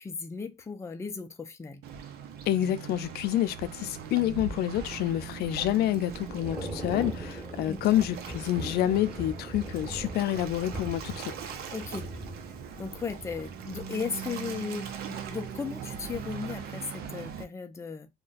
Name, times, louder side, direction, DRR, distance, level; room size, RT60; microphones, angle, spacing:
voice 1, 0.0-1.8 7.7-7.8 11.7-12.1 12.8-18.1, left 5 dB, 15° left, 0.5 m, -36 dB
Waves surf, 1.8-17.4, right 7 dB, 65° right, 0.6 m, -41 dB
voice 2, 2.5-11.3, left 13 dB, 70° left, 0.4 m, -28 dB
Thunder / Rain, 4.7-14.6 14.9-15.2, right 1 dB, 15° right, 1.4 m, -41 dB
2.4 x 2.2 x 3.9 m
cardioid pair, 110°, 17 cm